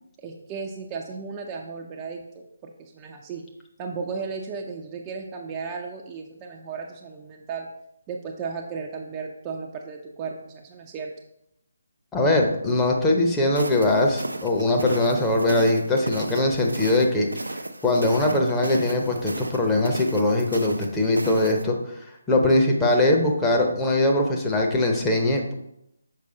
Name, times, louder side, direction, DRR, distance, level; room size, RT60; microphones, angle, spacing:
voice 1, 0.2-3.4 3.8-7.7 8.1-11.1, right 5 dB, 20° right, 0 dB, 0.5 m, -35 dB
voice 2, 12.1-17.3 17.8-21.8 22.3-25.5, left 2 dB, 10° left, -1 dB, 0.8 m, -21 dB
sound 1, 13.5-21.6, right 2 dB, 75° right, 0.6 m, -34 dB
6.6 x 5.1 x 3.9 m, 0.80 s
figure-of-eight pair, 145°, 0 cm